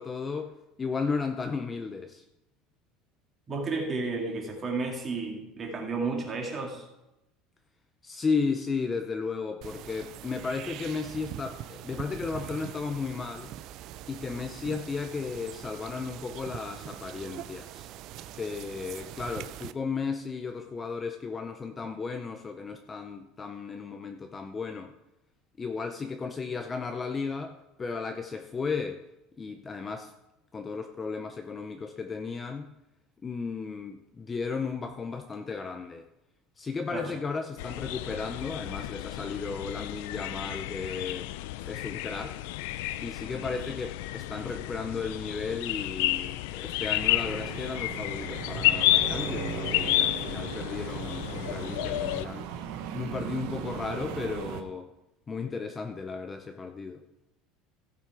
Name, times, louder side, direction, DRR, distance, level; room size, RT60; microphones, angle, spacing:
voice 1, 0.0-2.3 8.0-13.5 14.1-17.9 18.4-24.9 25.6-29.0 29.4-30.1 30.5-32.7 33.2-36.1 36.6-41.3 41.6-42.4 43.0-52.5 52.9-54.9 55.3-57.0, left 4 dB, 15° left, 6 dB, 0.5 m, -34 dB
voice 2, 3.5-6.9 36.9-37.1, right 3 dB, 20° right, 0 dB, 2.1 m, -32 dB
sound 1, 9.6-19.7, right 12 dB, 45° right, 0.4 m, -43 dB
sound 2, 37.6-52.2, left 15 dB, 75° left, 0.4 m, -31 dB
sound 3, 47.0-54.6, right 7 dB, 70° right, 1.1 m, -37 dB
15.5 x 5.7 x 4.8 m, 0.94 s
cardioid pair, 170°, 0 cm